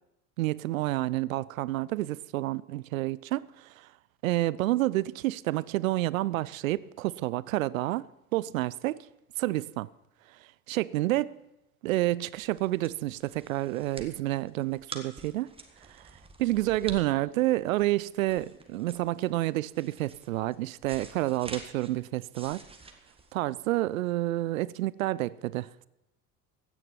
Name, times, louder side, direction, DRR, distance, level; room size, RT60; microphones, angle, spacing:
voice 1, 0.4-3.9 4.2-8.0 8.3-9.0 9.4-9.9 10.7-11.4 11.8-15.5 15.9-16.1 16.4-22.6 23.3-25.9, right 16 dB, 65° right, 0.6 m, -29 dB
sound 1, 12.3-24.0, right 3 dB, 10° right, 1.6 m, -48 dB
16.0 x 10.0 x 5.7 m
figure-of-eight pair, 65°, 44 cm